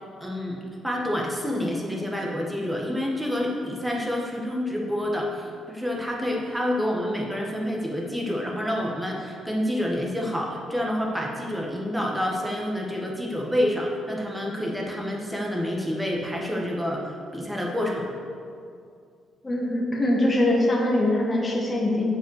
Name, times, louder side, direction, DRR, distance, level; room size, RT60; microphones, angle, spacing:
voice 1, 0.2-17.0 17.3-18.1, left 1 dB, 5° right, -1 dB, 1.7 m, -28 dB
voice 2, 19.4-22.1, left 1 dB, 25° left, -3 dB, 1.6 m, -23 dB
7.9 x 5.6 x 6.6 m, 2.3 s
cardioid pair, 90°, 0 cm